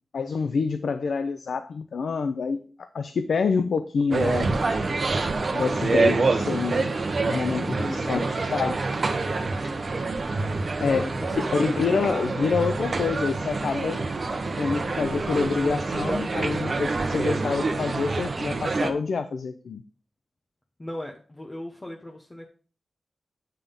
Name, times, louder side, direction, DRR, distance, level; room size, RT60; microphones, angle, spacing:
voice 1, 0.1-4.6 5.5-6.9 7.2-8.2 8.5-8.8 10.8-11.1 11.6-14.0 14.6-19.8, left 5 dB, 80° left, 9 dB, 0.5 m, -27 dB
sound 1, 4.1-18.9, right 3 dB, 50° right, 0.9 m, -26 dB
voice 2, 7.5-8.3 10.8-11.8 20.8-22.5, left 1 dB, 20° left, 1 dB, 0.9 m, -36 dB
9.1 x 3.6 x 5.4 m, 0.40 s
wide cardioid pair, 115°, 0 cm